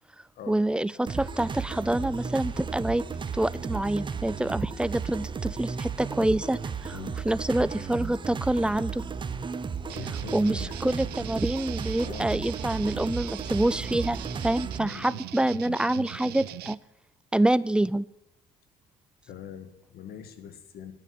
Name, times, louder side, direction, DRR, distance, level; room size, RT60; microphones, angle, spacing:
voice 1, 0.5-3.0 3.4-6.9 7.3-9.0 10.3-16.8 17.3-18.1, right 1 dB, 5° right, 19 dB, 0.4 m, -26 dB
sound 1, 1.1-14.8, right 6 dB, 30° right, 0.8 m, -34 dB
voice 2, 9.9-10.9 12.0-12.3 14.8-15.3 19.3-20.9, left 7 dB, 65° left, 10 dB, 1.7 m, -43 dB
sound 2, 9.9-16.7, right 16 dB, 70° right, 0.4 m, -40 dB
9.9 x 9.5 x 8.8 m, 0.83 s
cardioid pair, 110°, 17 cm